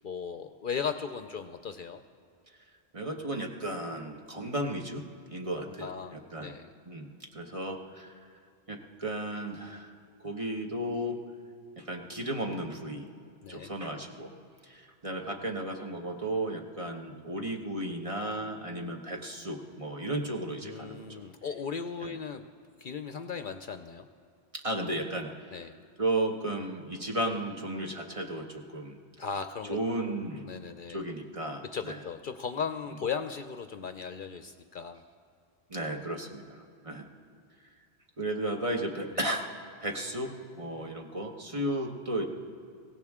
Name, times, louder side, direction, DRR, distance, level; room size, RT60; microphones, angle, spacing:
voice 1, 0.0-2.0 5.6-6.7 13.4-13.8 20.6-22.4 22.8-24.1 25.5-25.7 29.2-29.8 30.0-31.0 31.7-35.0 39.1-39.3, left 6 dB, 55° left, 9 dB, 0.7 m, -37 dB
voice 2, 2.9-5.0 5.3-5.9 6.3-6.5 6.9-8.1 8.7-9.9 10.2-11.2 11.8-13.1 13.5-14.3 14.7-21.2 22.0-22.1 24.5-25.3 26.0-29.0 29.7-30.5 30.9-32.0 35.7-37.1 38.2-39.5 39.8-42.2, right 1 dB, 30° right, 2 dB, 1.2 m, -34 dB
22.5 x 17.0 x 3.6 m, 2.5 s
omnidirectional pair, 1.1 m